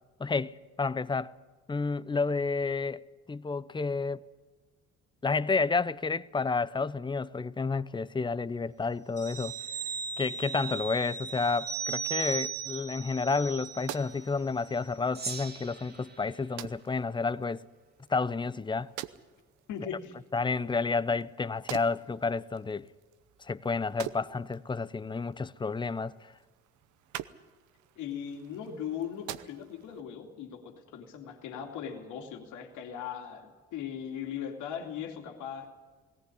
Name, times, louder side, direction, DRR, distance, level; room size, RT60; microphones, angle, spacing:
voice 1, 0.2-1.3 1.7-4.2 5.2-9.5 10.2-17.6 18.1-18.9 20.3-22.9 23.4-26.2, left 4 dB, 15° left, 0.6 m, -30 dB
sound 1, 9.2-14.3 14.6-14.7, right 6 dB, 55° right, 2.1 m, -37 dB
sound 2, 13.3-30.0, right 13 dB, 80° right, 0.9 m, -47 dB
Gong, 15.1-17.8, right 4 dB, 35° right, 1.8 m, -43 dB
voice 2, 19.7-20.1 28.0-35.7, left 8 dB, 80° left, 2.6 m, -39 dB
18.0 x 17.5 x 9.8 m
cardioid pair, 95°, 30 cm